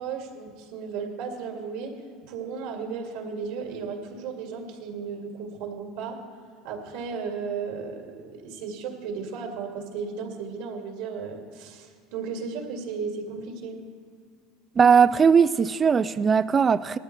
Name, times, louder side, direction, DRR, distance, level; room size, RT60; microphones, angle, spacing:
voice 1, 0.0-2.0 2.3-6.2 6.6-13.8, right 5 dB, 75° right, 2.2 m, -35 dB
voice 2, 14.8-17.0, right 6 dB, 25° right, 0.3 m, -19 dB
19.0 x 13.5 x 3.3 m
supercardioid pair, 130°, 0 cm